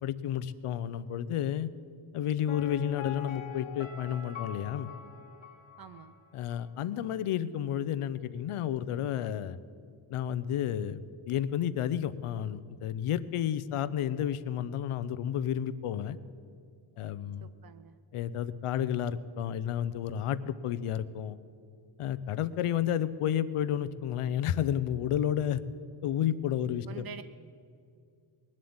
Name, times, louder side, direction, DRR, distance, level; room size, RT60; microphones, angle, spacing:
voice 1, 0.0-1.7 2.1-4.9 6.3-9.6 10.1-16.2 17.0-17.5 18.1-21.4 22.0-25.6 26.0-27.1, left 10 dB, 90° left, 16 dB, 0.8 m, -31 dB
Piano, 2.5-6.2 6.5-6.6, left 6 dB, 60° left, 2.0 m, -43 dB
voice 2, 5.8-6.2 17.4-18.0 26.9-27.2, right 7 dB, 50° right, 12 dB, 0.5 m, -46 dB
20.5 x 7.7 x 8.7 m, 2.3 s
wide cardioid pair, 145°, 49 cm